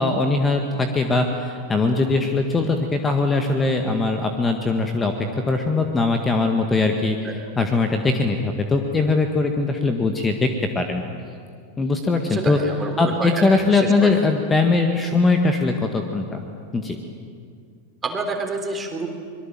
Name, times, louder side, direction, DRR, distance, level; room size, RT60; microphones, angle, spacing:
voice 1, 0.0-5.1 5.5-7.3 7.6-10.5 10.8-11.0 11.8-12.6 13.0-16.4 16.7-17.0, left 3 dB, 15° left, 5 dB, 1.9 m, -21 dB
voice 2, 12.3-14.1 18.0-19.1, right 3 dB, 15° right, 5 dB, 3.5 m, -28 dB
25.0 x 22.5 x 7.7 m, 2.2 s
figure-of-eight pair, 90°, 0 cm